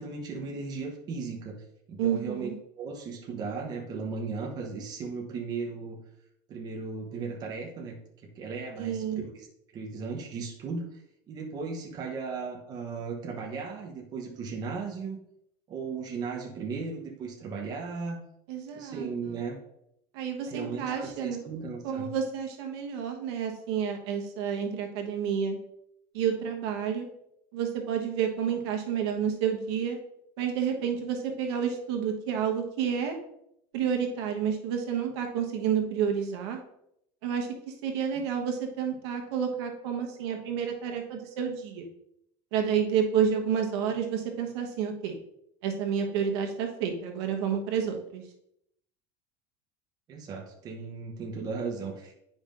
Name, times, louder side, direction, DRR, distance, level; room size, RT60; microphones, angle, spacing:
voice 1, 0.0-1.6 1.9-2.5 2.8-6.0 6.5-9.5 9.7-10.8 11.3-15.2 15.7-18.2 18.7-19.6 20.5-22.1 50.1-52.2, right 4 dB, 30° right, 1 dB, 0.9 m, -36 dB
voice 2, 2.0-2.6 8.8-9.2 18.5-19.1 20.1-21.4 21.8-25.6 26.1-27.1 27.5-30.0 30.4-33.2 33.7-36.6 37.2-41.9 42.5-45.1 45.6-48.2, right 7 dB, 90° right, 3 dB, 1.2 m, -30 dB
9.4 x 5.2 x 2.6 m, 0.76 s
cardioid pair, 170°, 13 cm